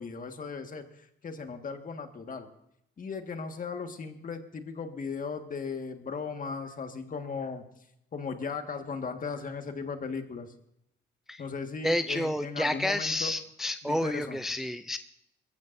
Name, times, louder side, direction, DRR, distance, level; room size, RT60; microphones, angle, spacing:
voice 1, 0.0-2.5 3.0-7.7 8.1-10.5 11.4-13.3 13.8-14.4, left 5 dB, 45° left, 6 dB, 1.8 m, -37 dB
voice 2, 11.8-15.0, left 1 dB, ahead, 10 dB, 0.5 m, -30 dB
21.5 x 15.0 x 2.7 m, 0.77 s
cardioid pair, 90°, 20 cm